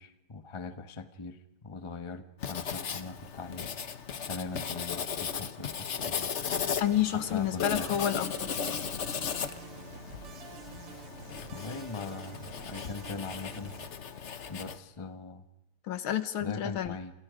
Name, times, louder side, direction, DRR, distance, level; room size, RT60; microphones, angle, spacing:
voice 1, 0.0-3.7 4.3-6.3 7.3-7.9 11.4-13.8 14.5-15.4 16.4-17.1, left 4 dB, 25° left, 9 dB, 0.7 m, -41 dB
Writing, 2.4-14.8, left 7 dB, 45° left, 0.9 m, -36 dB
voice 2, 6.8-8.5 15.8-17.0, left 10 dB, 70° left, 12 dB, 1.9 m, -30 dB
sound 1, 6.8-13.9, right 7 dB, 80° right, 2.4 m, -49 dB
28.0 x 27.5 x 5.1 m, 0.92 s
omnidirectional pair, 2.4 m